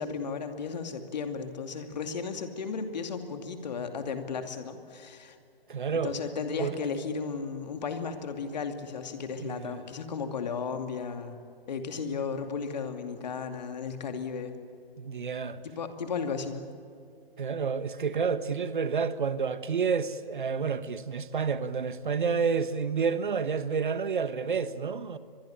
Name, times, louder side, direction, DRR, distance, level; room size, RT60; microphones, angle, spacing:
voice 1, 0.0-5.4 6.0-11.4 11.7-14.5 15.6-16.6, left 5 dB, 45° left, 2.6 m, -34 dB
voice 2, 5.7-6.1 6.6-6.7 9.4-9.8 15.0-15.6 17.4-25.2, right 5 dB, 55° right, 1.3 m, -29 dB
24.0 x 21.5 x 8.9 m
figure-of-eight pair, 135°, 30 cm